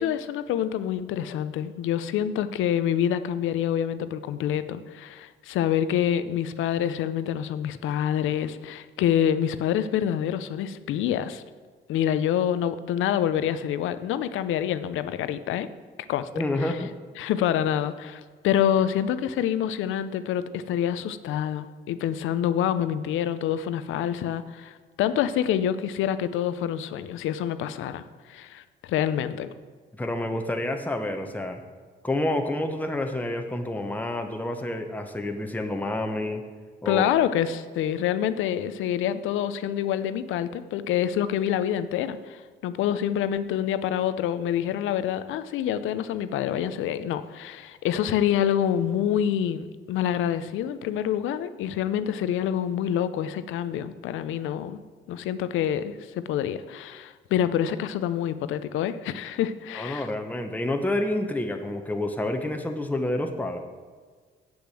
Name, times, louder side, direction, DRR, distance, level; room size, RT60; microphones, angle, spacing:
voice 1, 0.0-11.4 11.9-15.7 16.1-16.3 16.6-16.8 17.2-28.0 28.3-28.6 28.9-29.5 36.9-54.8 55.1-60.1, left 10 dB, 85° left, 13 dB, 0.6 m, -27 dB
voice 2, 16.3-16.9 29.9-31.6 32.0-36.4 36.8-37.1 59.7-63.6, left 1 dB, 10° left, 4 dB, 0.9 m, -28 dB
8.0 x 6.9 x 7.6 m, 1.5 s
cardioid pair, 90°, 20 cm